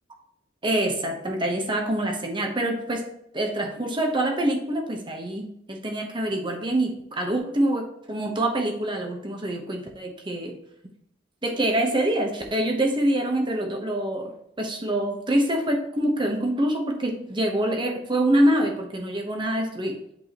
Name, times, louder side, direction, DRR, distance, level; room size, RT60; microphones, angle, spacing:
voice 1, 0.6-3.1 3.3-10.5 11.4-14.3 14.6-20.0, right 1 dB, 25° right, 2 dB, 1.0 m, -25 dB
8.0 x 4.9 x 3.0 m, 0.77 s
head